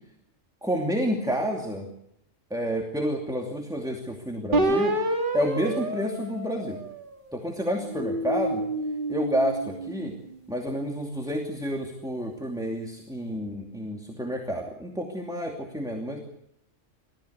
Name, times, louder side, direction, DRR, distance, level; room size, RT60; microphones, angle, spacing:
voice 1, 0.6-1.9 2.5-5.0 5.3-6.8 7.3-8.6 9.1-10.1 10.5-16.2, equal, 5° right, 1 dB, 2.6 m, -29 dB
sound 1, 4.5-7.2 7.8-10.3, right 1 dB, 40° right, 3.1 m, -29 dB
29.5 x 15.0 x 8.2 m, 0.78 s
omnidirectional pair, 1.3 m